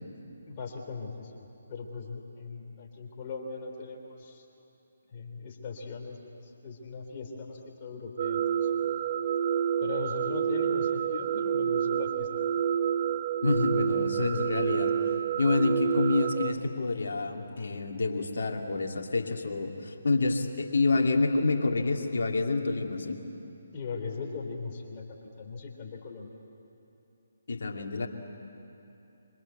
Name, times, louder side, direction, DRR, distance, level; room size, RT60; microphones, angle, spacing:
voice 1, 0.5-4.5 5.1-9.0 9.8-12.3 23.7-26.4, left 4 dB, 30° left, 1 dB, 3.5 m, -39 dB
sound 1, 8.2-16.5, right 8 dB, 35° right, 0.6 m, -28 dB
voice 2, 13.4-14.9 15.4-23.2 27.5-28.1, left 3 dB, 55° left, 2 dB, 2.4 m, -28 dB
26.0 x 25.0 x 8.3 m, 2.9 s
figure-of-eight pair, 140°, 0 cm